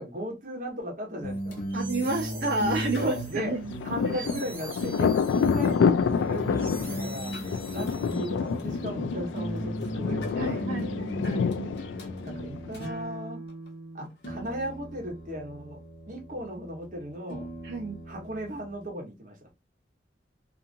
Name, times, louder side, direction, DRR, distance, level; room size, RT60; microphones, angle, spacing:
voice 1, 0.0-1.6 2.1-2.4 3.0-11.7 12.2-13.4 13.9-17.5 18.1-19.5, equal, 45° right, 1.2 m, -37 dB
sound 1, 1.2-18.9, right 1 dB, 60° left, 1.0 m, -38 dB
sound 2, 1.4-8.6, right 2 dB, 10° right, 0.6 m, -46 dB
voice 2, 1.7-3.8 10.4-11.7 17.6-18.0, right 2 dB, 70° right, 0.9 m, -30 dB
Thunder, 3.4-12.9, left 6 dB, 85° left, 0.3 m, -28 dB
2.8 x 2.5 x 2.6 m
head